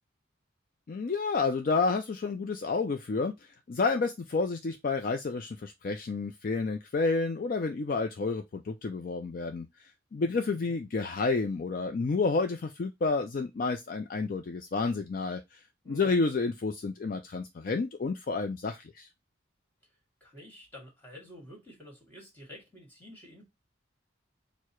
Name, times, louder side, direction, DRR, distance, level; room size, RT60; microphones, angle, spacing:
voice 1, 0.9-15.6 15.9-19.1, left 4 dB, 45° left, 0.4 m, -30 dB
voice 2, 10.2-10.7 15.8-16.2 19.9-23.4, left 1 dB, 10° left, 1.7 m, -50 dB
4.6 x 2.0 x 4.4 m
head